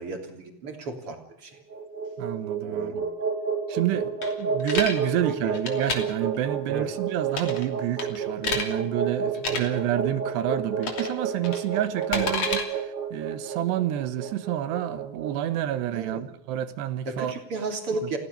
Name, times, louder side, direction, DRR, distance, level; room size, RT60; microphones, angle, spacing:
voice 1, 0.0-1.5 2.6-3.1 4.0-4.1 4.5-4.6 5.3-5.5 6.7-6.9 9.5-9.6 12.1-12.3 15.9-16.3 17.1-18.2, right 3 dB, 35° right, 3.7 m, -34 dB
sound 1, 1.6-15.9, right 6 dB, 50° right, 3.9 m, -30 dB
voice 2, 2.2-3.0 3.7-4.1 4.4-12.5 12.8-17.3 18.0-18.1, right 12 dB, 85° right, 3.5 m, -29 dB
sound 2, 4.2-5.0 5.5-6.0 7.3-7.7 8.0-8.7 9.3-9.6 10.8-11.1 11.4-12.6, left 4 dB, 40° left, 3.6 m, -29 dB
29.5 x 16.5 x 6.9 m
omnidirectional pair, 4.8 m